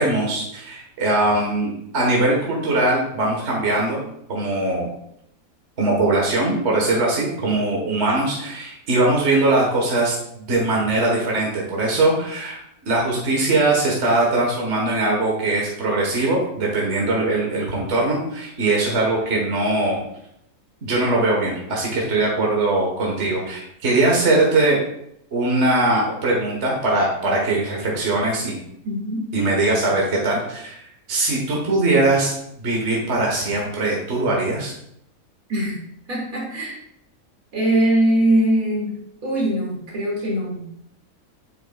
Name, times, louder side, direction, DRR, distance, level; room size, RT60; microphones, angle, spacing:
voice 1, 0.0-4.0 4.3-4.9 5.8-12.6 12.9-20.0 20.8-24.8 25.3-28.6 29.3-30.8 31.1-34.7, right 2 dB, 50° right, -2 dB, 1.7 m, -21 dB
voice 2, 28.8-29.2 35.5-35.8 36.1-36.8 37.5-39.0 39.2-40.6, right 1 dB, 75° right, -4 dB, 2.9 m, -21 dB
8.9 x 6.8 x 2.4 m, 0.75 s
omnidirectional pair, 1.5 m